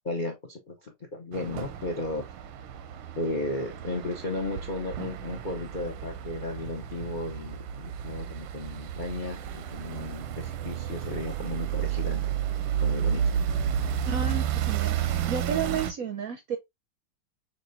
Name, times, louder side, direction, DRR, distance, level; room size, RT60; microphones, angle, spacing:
voice 1, 0.0-2.2 3.2-12.2 12.8-13.2, left 2 dB, 90° left, 0.4 m, -34 dB
sound 1, 1.3-15.9, right 9 dB, 90° right, 1.6 m, -31 dB
voice 2, 14.1-16.6, right 7 dB, 65° right, 0.8 m, -32 dB
5.8 x 3.2 x 2.6 m
omnidirectional pair, 2.3 m